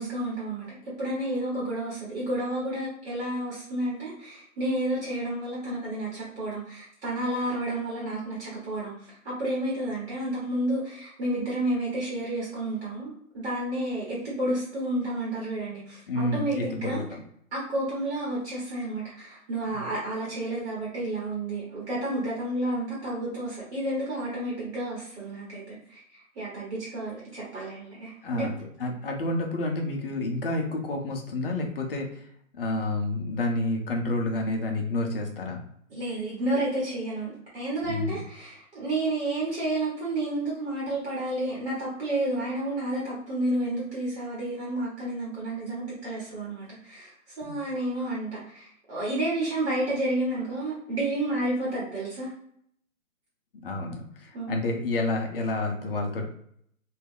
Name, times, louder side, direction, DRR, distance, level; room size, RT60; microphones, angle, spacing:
voice 1, 0.0-8.9 9.2-17.0 17.5-28.5 35.9-48.3 48.5-52.3 54.3-54.6, right 1 dB, 45° right, -6 dB, 1.0 m, -31 dB
voice 2, 16.1-17.2 19.7-19.9 28.2-32.3 32.6-35.6 37.8-38.2 47.4-47.6 53.6-56.3, left 2 dB, 45° left, 2 dB, 0.6 m, -29 dB
2.3 x 2.1 x 3.4 m, 0.68 s
hypercardioid pair, 140°, 42 cm